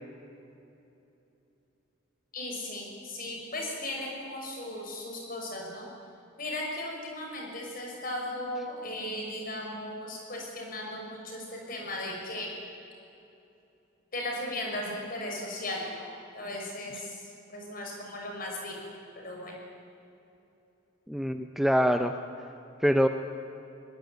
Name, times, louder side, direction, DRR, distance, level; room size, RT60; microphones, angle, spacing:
voice 1, 2.3-5.9 6.4-12.5 14.1-16.1 16.3-17.1 17.5-18.9 19.2-19.6, left 1 dB, 45° left, 0 dB, 6.3 m, -36 dB
voice 2, 21.1-22.2 22.8-23.1, equal, ahead, 7 dB, 0.7 m, -24 dB
21.0 x 21.0 x 9.5 m, 2.8 s
head